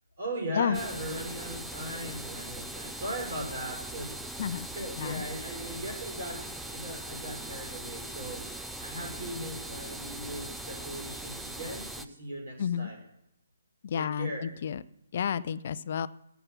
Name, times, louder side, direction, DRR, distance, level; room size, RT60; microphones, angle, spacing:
voice 1, 0.2-4.4 4.7-8.4 8.8-13.0 13.9-14.4, right 1 dB, 50° right, 1 dB, 5.6 m, -38 dB
sound 1, 0.7-12.1, right 1 dB, ahead, 0.5 m, -40 dB
voice 2, 12.6-12.9 13.8-14.8 15.1-16.1, left 8 dB, 40° left, 15 dB, 0.6 m, -30 dB
17.5 x 7.0 x 7.2 m, 0.82 s
figure-of-eight pair, 135°, 0 cm